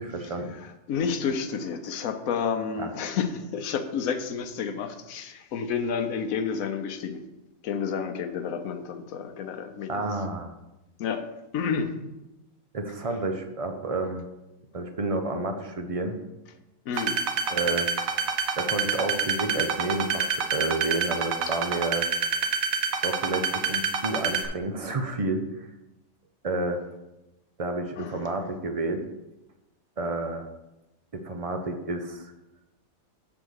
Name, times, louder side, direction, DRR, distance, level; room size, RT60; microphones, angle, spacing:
voice 1, 0.0-0.5 2.8-2.9 9.9-10.5 12.7-14.3 14.7-16.2 17.5-17.9 18.6-22.1 23.0-25.4 26.4-26.8 27.6-29.0 30.0-30.5 31.1-32.3, right 2 dB, 40° right, 5 dB, 0.5 m, -30 dB
voice 2, 0.5-7.3 7.6-10.3 11.0-11.2 11.5-11.9 16.9-17.2 21.5-21.6 23.4-23.5 28.0-28.3, left 6 dB, 80° left, 7 dB, 1.1 m, -30 dB
sound 1, 17.0-24.5, right 6 dB, 85° right, 1.2 m, -27 dB
7.8 x 3.6 x 6.3 m, 0.97 s
omnidirectional pair, 1.4 m